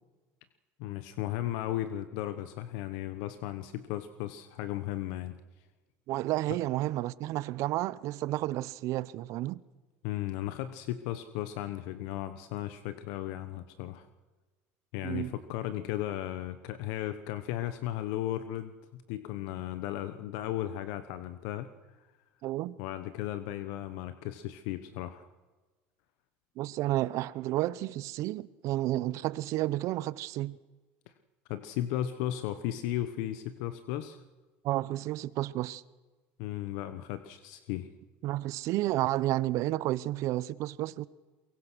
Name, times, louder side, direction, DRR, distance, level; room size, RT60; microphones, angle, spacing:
voice 1, 0.8-5.4 10.0-14.1 14.9-21.7 22.8-25.3 31.5-34.2 36.4-37.9, left 13 dB, 75° left, 1.2 m, -35 dB
voice 2, 6.1-9.6 15.0-15.3 22.4-22.8 26.6-30.6 34.6-35.8 38.2-41.1, right 16 dB, 65° right, 0.8 m, -31 dB
23.0 x 22.5 x 6.3 m
supercardioid pair, 95°, 6 cm